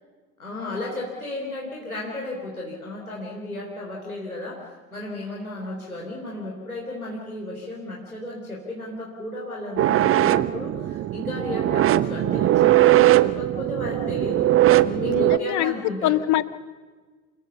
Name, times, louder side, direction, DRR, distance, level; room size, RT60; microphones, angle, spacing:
voice 1, 0.4-14.5 14.8-16.2, left 1 dB, 90° left, -3 dB, 3.7 m, -33 dB
sound 1, 9.8-15.4, right 14 dB, 30° right, 0.8 m, -20 dB
voice 2, 15.1-15.7 16.0-16.4, left 15 dB, 40° left, 16 dB, 1.1 m, -24 dB
28.5 x 21.0 x 7.0 m, 1.4 s
figure-of-eight pair, 65°, 42 cm